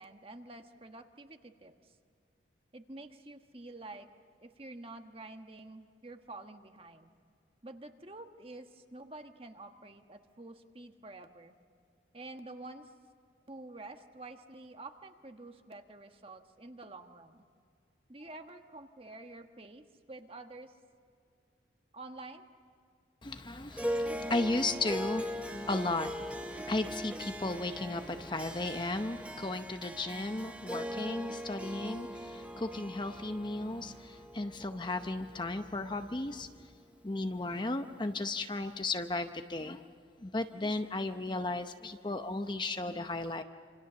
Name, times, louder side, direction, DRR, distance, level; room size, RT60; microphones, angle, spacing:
voice 1, 0.0-2.0 2.7-4.1 4.4-7.1 7.6-11.5 12.1-12.9 13.5-17.4 18.1-20.8 21.9-22.5, right 2 dB, 30° right, 6 dB, 1.3 m, -48 dB
voice 2, 23.2-36.7 37.0-39.8 40.2-43.4, left 2 dB, 25° left, 8 dB, 0.7 m, -35 dB
Harp, 23.7-36.3, equal, 5° right, 0.8 m, -40 dB
27.0 x 26.5 x 6.9 m, 2.3 s
head